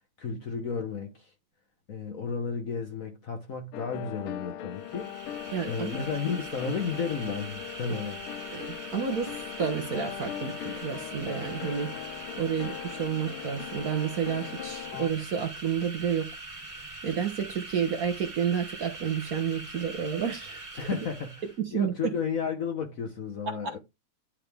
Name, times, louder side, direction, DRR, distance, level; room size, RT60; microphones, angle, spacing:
voice 1, 0.2-1.3 1.9-5.1 5.7-8.2 20.8-21.4 21.7-23.8, left 5 dB, 50° left, 1.1 m, -33 dB
sound 1, 3.7-15.1, left 12 dB, 90° left, 1.5 m, -40 dB
sound 2, 4.7-21.6, right 2 dB, 15° right, 1.8 m, -43 dB
voice 2, 5.5-5.9 8.5-12.1 12.4-16.3 17.0-20.9 21.6-22.1 23.4-23.7, right 7 dB, 55° right, 1.1 m, -30 dB
10.0 x 3.7 x 3.4 m
omnidirectional pair, 2.3 m